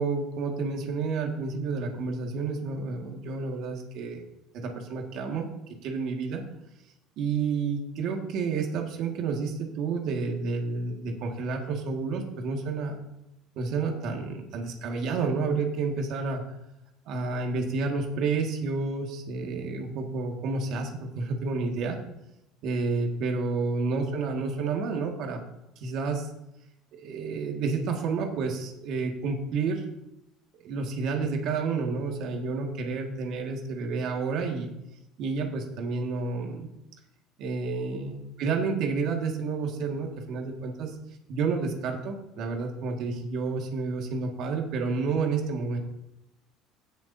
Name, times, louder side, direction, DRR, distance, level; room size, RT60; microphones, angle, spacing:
voice 1, 0.0-4.2 4.5-5.5 5.8-6.4 7.2-13.0 13.6-16.4 17.1-22.0 22.6-25.4 25.8-26.3 26.9-29.9 30.6-34.7 35.2-36.7 37.4-41.0 41.3-45.8, right 4 dB, 60° right, 2 dB, 2.0 m, -30 dB
17.0 x 7.0 x 2.8 m, 0.89 s
supercardioid pair, 110°, 0 cm